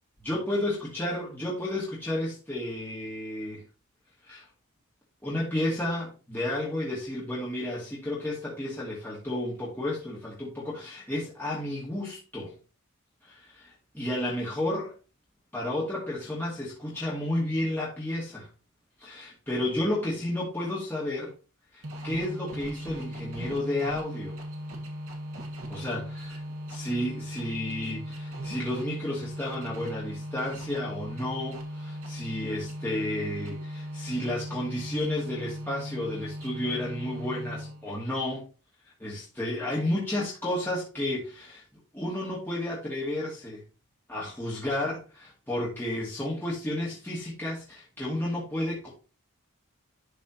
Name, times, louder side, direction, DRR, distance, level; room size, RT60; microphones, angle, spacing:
voice 1, 0.2-3.6 4.2-4.5 5.2-12.5 13.2-14.9 15.5-18.5 19.0-21.3 21.7-24.4 25.7-26.4 26.7-38.4 39.0-41.6 41.9-43.6 44.1-45.0 45.5-48.9, left 1 dB, 10° left, 2.3 m, -32 dB
sound 1, 21.8-38.0, equal, 85° right, 1.8 m, -38 dB
12.0 x 4.1 x 2.9 m
head